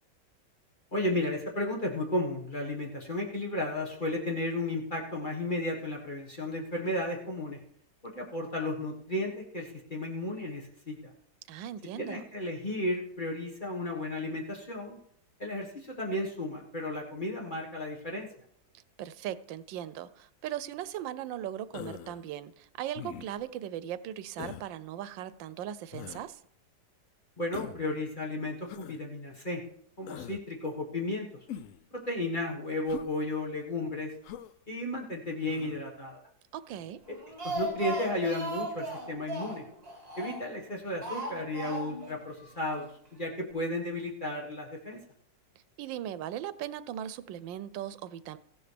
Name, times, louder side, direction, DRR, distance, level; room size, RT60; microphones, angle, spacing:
voice 1, 0.9-7.6 8.0-10.9 12.0-15.0 15.4-18.3 27.4-29.6 30.0-31.3 31.9-34.1 34.7-36.2 37.1-37.2 37.4-39.6 40.2-45.0, left 1 dB, 30° left, 1.6 m, -34 dB
voice 2, 11.5-12.2 19.0-26.4 36.5-37.0 45.8-48.4, right 11 dB, 90° right, 1.3 m, -38 dB
Human voice, 21.7-22.2 23.0-23.5 24.4-24.7 25.9-26.3 27.5-27.9 28.7-29.0 30.1-30.4 31.5-31.8 32.9-33.1 34.2-34.5 35.5-35.8, left 10 dB, 75° left, 0.7 m, -42 dB
Speech, 37.1-40.6 41.0-42.2 42.4-42.5 42.8-42.9, right 1 dB, 35° right, 2.8 m, -36 dB
15.0 x 11.5 x 3.4 m
omnidirectional pair, 2.0 m